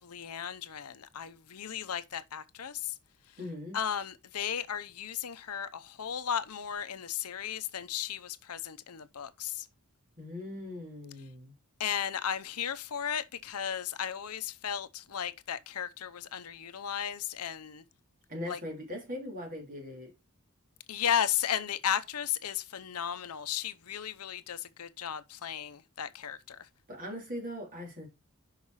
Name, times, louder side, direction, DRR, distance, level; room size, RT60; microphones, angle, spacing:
voice 1, 0.0-2.9 3.7-9.7 11.8-17.8 18.5-18.6 20.9-26.6, left 9 dB, 80° left, 0.7 m, -35 dB
voice 2, 3.4-3.8 10.2-11.5 18.3-20.1 26.9-28.1, left 1 dB, 40° right, 3.2 m, -40 dB
5.7 x 5.6 x 4.7 m
head